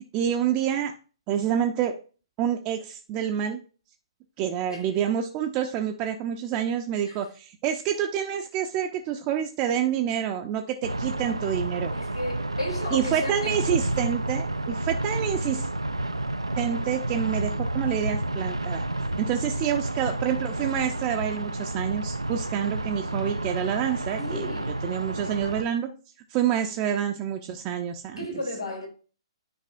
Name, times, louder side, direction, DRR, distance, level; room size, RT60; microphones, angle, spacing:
voice 1, 0.1-0.9 1.3-1.9 2.4-3.6 4.4-11.9 12.9-15.7 16.6-18.9 19.2-24.5 24.8-25.9 26.3-28.3, right 9 dB, 30° right, 0.6 m, -27 dB
sound 1, 10.8-25.6, right 1 dB, 85° right, 0.4 m, -30 dB
voice 2, 11.9-13.8 24.2-24.8 28.2-28.9, left 1 dB, 85° left, 3.0 m, -34 dB
10.0 x 4.7 x 2.5 m
figure-of-eight pair, 120°, 3 cm